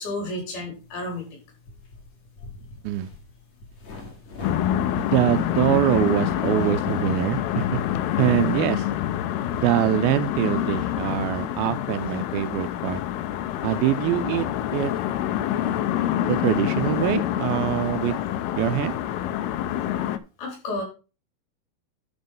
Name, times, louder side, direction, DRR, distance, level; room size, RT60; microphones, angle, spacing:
voice 1, 0.0-1.4 17.4-17.6 19.8-19.9 20.4-20.8, left 2 dB, 70° left, 5.7 m, -32 dB
sound 1, 0.7-7.0, left 3 dB, 50° left, 2.9 m, -46 dB
sound 2, 4.4-20.2, left 11 dB, 90° left, 2.6 m, -26 dB
voice 2, 5.0-7.8 8.2-8.9 9.5-13.0 13.6-14.9 16.3-18.2 18.6-19.0, right 13 dB, 80° right, 2.3 m, -24 dB
11.0 x 4.4 x 5.3 m
omnidirectional pair, 4.5 m